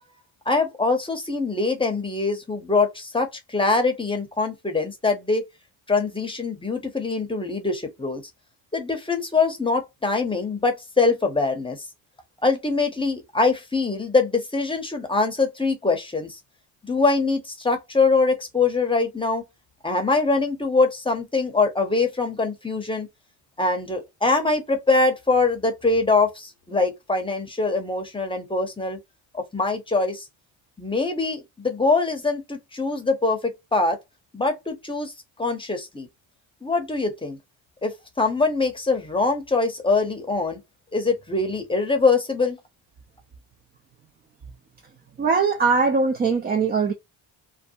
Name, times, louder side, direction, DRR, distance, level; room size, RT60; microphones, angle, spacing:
voice 1, 0.5-5.4 5.9-8.2 8.7-11.8 12.4-16.4 16.8-19.4 19.8-23.1 23.6-29.0 29.3-30.2 30.8-34.0 34.3-35.1 35.4-36.1 36.6-37.4 37.8-40.6 40.9-42.6, left 3 dB, 10° left, 0.7 m, -23 dB
voice 2, 45.2-46.9, right 4 dB, 25° right, 0.4 m, -21 dB
2.6 x 2.1 x 2.6 m
cardioid pair, 95°, 44 cm